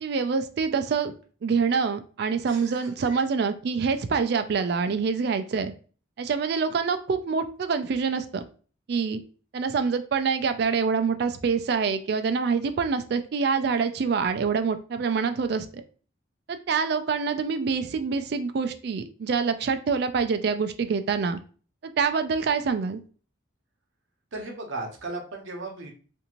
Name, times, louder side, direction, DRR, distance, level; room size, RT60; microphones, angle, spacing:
voice 1, 0.0-1.1 1.4-5.7 6.2-8.4 8.9-9.2 9.5-15.7 16.5-21.4 21.8-23.0, right 5 dB, 55° right, 9 dB, 0.3 m, -26 dB
voice 2, 2.4-3.2 24.3-25.9, right 2 dB, 75° right, 1 dB, 0.8 m, -36 dB
2.6 x 2.5 x 2.9 m, 0.39 s
head